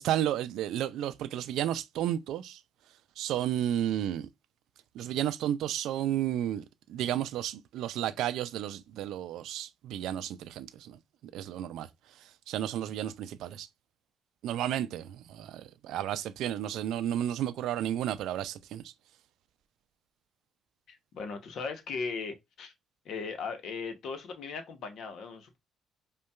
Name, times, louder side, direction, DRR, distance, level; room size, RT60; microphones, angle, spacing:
voice 1, 0.0-2.6 3.2-4.3 4.9-11.0 11.3-11.9 12.2-13.7 14.4-18.9, right 11 dB, 80° right, 0.4 m, -32 dB
voice 2, 20.9-22.7 23.0-25.6, left 5 dB, 70° left, 0.9 m, -38 dB
5.2 x 2.3 x 2.3 m
supercardioid pair, 65°, 0 cm